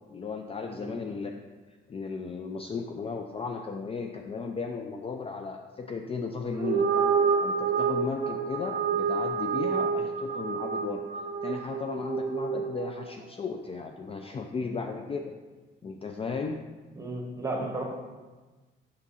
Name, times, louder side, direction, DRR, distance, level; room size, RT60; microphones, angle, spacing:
voice 1, 0.1-1.3 1.9-6.9 7.4-11.0 11.4-15.2 15.8-16.6, left 4 dB, 30° left, 4 dB, 0.4 m, -35 dB
sound 1, 6.5-13.1, right 6 dB, 45° right, 0.7 m, -28 dB
voice 2, 16.9-17.8, right 2 dB, 15° right, 0 dB, 1.4 m, -34 dB
6.6 x 3.5 x 4.1 m, 1.3 s
cardioid pair, 90°, 20 cm